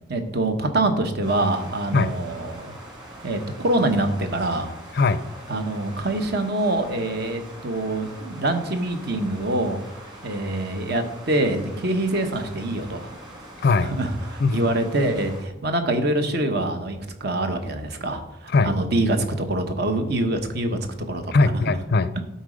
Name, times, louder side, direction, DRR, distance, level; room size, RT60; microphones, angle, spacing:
voice 1, 0.1-2.8 3.2-4.7 5.5-9.8 10.2-13.2 13.8-20.8 21.1-21.3, right 1 dB, 55° right, 6 dB, 1.0 m, -25 dB
sound 1, 1.2-15.4, right 1 dB, 20° right, 2.2 m, -43 dB
voice 2, 13.6-13.9 14.4-14.6 18.5-18.7 21.3-22.1, left 3 dB, 50° left, 15 dB, 0.4 m, -20 dB
12.0 x 4.1 x 5.0 m, 0.94 s
head